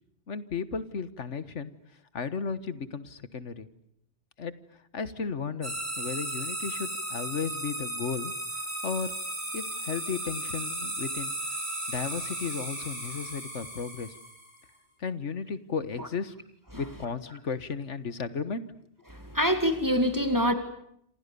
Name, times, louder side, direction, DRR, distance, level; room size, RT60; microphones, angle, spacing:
voice 1, 0.3-1.7 2.1-3.7 4.4-4.5 4.9-8.3 8.8-9.1 9.5-11.3 11.9-14.1 15.0-16.3 16.7-18.7, left 5 dB, 75° left, 14 dB, 1.7 m, -34 dB
sound 1, 5.6-14.6, right 1 dB, 40° right, 6.4 m, -35 dB
voice 2, 19.1-20.5, equal, 15° right, 7 dB, 2.4 m, -25 dB
28.0 x 27.5 x 6.9 m, 0.71 s
omnidirectional pair, 1.2 m